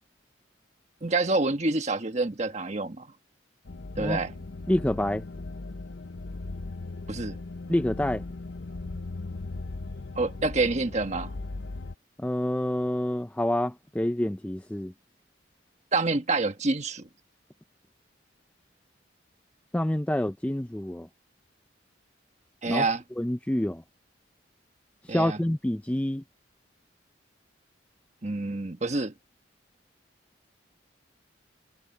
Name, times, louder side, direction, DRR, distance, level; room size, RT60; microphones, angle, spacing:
voice 1, 1.0-3.1 4.0-4.3 7.1-7.4 10.2-11.3 15.9-17.1 22.6-23.0 25.1-25.4 28.2-29.1, right 3 dB, 35° right, 1.3 m, -27 dB
sound 1, 3.6-11.9, left 3 dB, 70° left, 0.7 m, -38 dB
voice 2, 4.7-5.2 7.7-8.2 12.2-14.9 19.7-21.1 22.7-22.8 23.2-23.8 25.1-26.2, left 1 dB, 5° left, 0.4 m, -27 dB
head